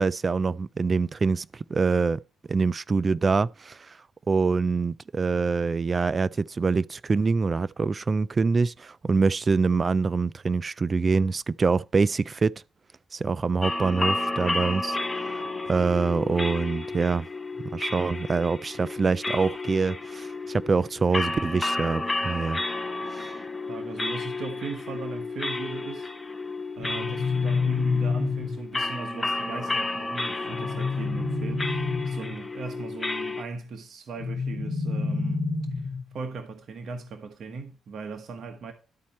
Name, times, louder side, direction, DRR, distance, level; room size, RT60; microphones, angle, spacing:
voice 1, 0.0-2.2 2.5-3.9 4.3-12.5 13.1-15.0 15.7-17.3 17.7-22.6 23.1-23.3, right 4 dB, 35° right, 0.3 m, -25 dB
sound 1, 13.6-33.4, left 2 dB, 20° left, 1.2 m, -32 dB
voice 2, 23.7-26.1 26.8-35.8 36.1-38.7, right 4 dB, 60° right, 1.3 m, -38 dB
sound 2, 26.8-28.8 30.5-32.4 34.2-36.1, left 4 dB, 75° left, 1.1 m, -28 dB
12.5 x 4.3 x 4.3 m
cardioid pair, 90°, 0 cm